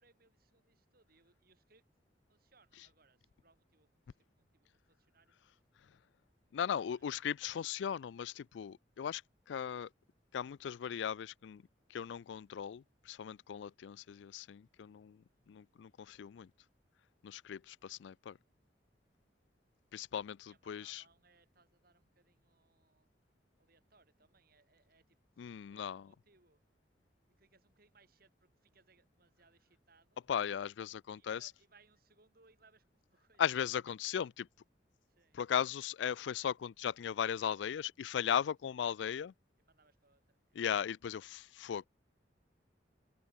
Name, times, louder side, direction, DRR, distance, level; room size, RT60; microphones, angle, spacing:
voice 1, 0.0-1.8 2.3-5.3 6.5-7.1 15.3-15.5 20.5-23.1 23.6-26.6 27.3-30.2 31.1-33.7 35.1-35.4 38.7-38.8 39.6-40.7, right 3 dB, 55° right, 7.2 m, -70 dB
voice 2, 6.5-9.2 9.5-9.9 10.3-11.6 11.9-16.5 17.2-18.4 19.9-21.0 25.4-26.0 30.3-31.5 33.4-34.5 35.3-39.3 40.6-41.9, left 8 dB, 80° left, 0.3 m, -37 dB
open air
head